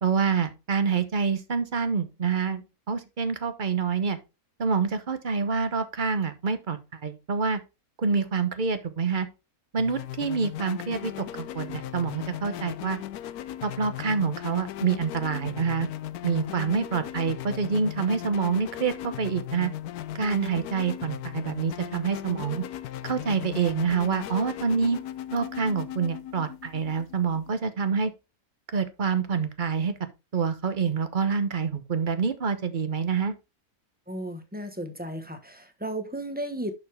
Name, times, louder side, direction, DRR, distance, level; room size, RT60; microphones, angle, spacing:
voice 1, 0.0-2.6 2.9-4.2 4.6-7.6 8.0-9.3 9.7-13.0 13.6-15.9 16.2-19.7 20.1-22.6 23.0-25.0 25.3-28.1 28.7-29.9 30.3-33.3, right 5 dB, 40° right, 0.9 m, -27 dB
sound 1, 9.8-27.5, left 12 dB, 80° left, 1.1 m, -37 dB
voice 2, 34.1-36.7, right 1 dB, 5° right, 1.0 m, -34 dB
11.0 x 4.8 x 3.4 m
omnidirectional pair, 1.6 m